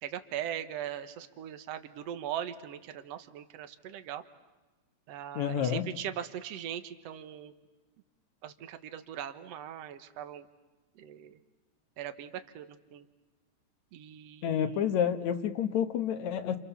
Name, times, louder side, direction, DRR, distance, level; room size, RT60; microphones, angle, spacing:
voice 1, 0.0-4.2 5.1-7.5 8.4-10.5 10.9-11.4 12.0-13.1 13.9-15.0, right 10 dB, 65° right, 10 dB, 2.2 m, -40 dB
voice 2, 5.4-5.8 14.4-16.6, left 8 dB, 75° left, 8 dB, 2.5 m, -29 dB
30.0 x 28.0 x 7.0 m, 1.2 s
omnidirectional pair, 3.3 m